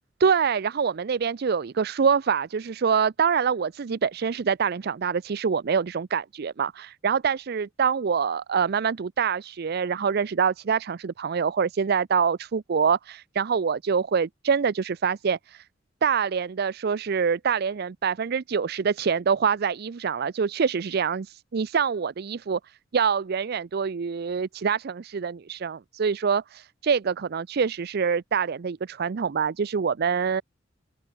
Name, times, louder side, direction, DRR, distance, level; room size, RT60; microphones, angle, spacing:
voice 1, 0.2-15.6 16.0-22.6 22.9-30.4, right 6 dB, 55° right, 0.5 m, -25 dB
open air
head